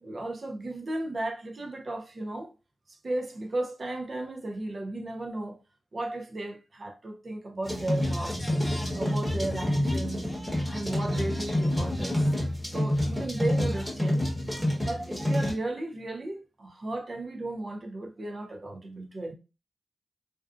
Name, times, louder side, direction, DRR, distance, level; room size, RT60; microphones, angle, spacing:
voice 1, 0.0-2.5 2.9-5.6 5.9-8.6 8.9-12.3 12.6-14.3 14.8-19.3, right 2 dB, 45° right, 0.6 m, -35 dB
sound 1, 7.6-15.5, left 1 dB, ahead, 1.1 m, -28 dB
2.5 x 2.3 x 2.4 m
cardioid pair, 85°, 0 cm